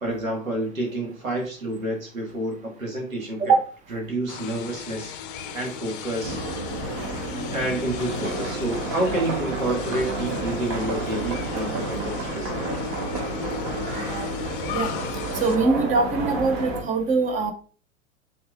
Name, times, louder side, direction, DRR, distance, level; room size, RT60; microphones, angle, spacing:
voice 1, 0.0-3.5 3.9-5.1 5.5-6.6 7.5-12.9, right 1 dB, 75° right, -1 dB, 1.9 m, -29 dB
sound 1, 4.3-15.6, left 8 dB, 40° left, 0.6 m, -36 dB
sound 2, 6.2-16.8, right 2 dB, 45° right, 1.5 m, -30 dB
voice 2, 14.0-14.3 14.7-14.9 15.4-17.5, right 4 dB, 20° right, 7 dB, 0.6 m, -22 dB
5.9 x 3.6 x 2.4 m, 0.40 s
figure-of-eight pair, 95°, 40 cm